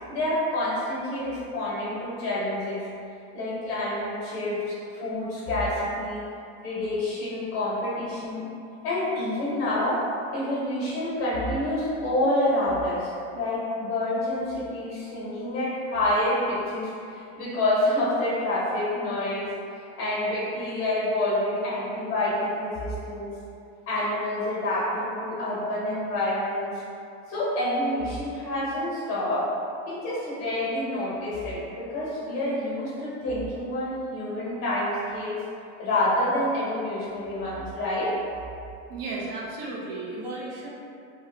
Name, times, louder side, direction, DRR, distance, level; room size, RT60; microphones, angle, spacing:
voice 1, 0.1-2.8 3.3-6.2 6.6-8.5 8.8-10.0 10.3-19.5 20.0-23.3 23.9-26.8 27.3-29.5 29.9-35.4 35.8-38.1, left 1 dB, 40° left, -8 dB, 1.1 m, -28 dB
voice 2, 38.9-40.7, right 2 dB, 60° right, -5 dB, 0.7 m, -34 dB
3.4 x 2.3 x 2.7 m, 2.5 s
supercardioid pair, 165°, 33 cm